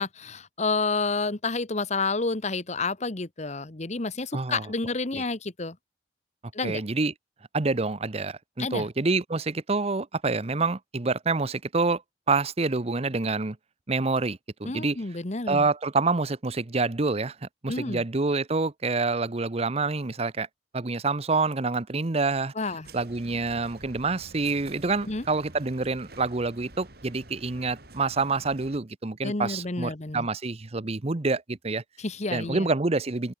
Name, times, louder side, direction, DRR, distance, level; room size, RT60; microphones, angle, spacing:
voice 1, 0.0-5.8 6.5-6.8 8.6-8.9 14.6-15.7 17.7-18.0 22.5-22.9 25.1-25.2 29.2-30.3 32.0-32.7, left 3 dB, 40° left, 1.2 m, -30 dB
voice 2, 4.3-4.7 5.1-5.2 6.6-7.1 7.5-12.0 12.3-13.6 13.9-15.0 15.5-17.4 17.6-20.5 20.7-22.5 22.9-31.8 32.3-33.3, right 3 dB, 35° right, 0.8 m, -27 dB
sound 1, 22.8-28.8, right 2 dB, 60° right, 7.5 m, -48 dB
open air
head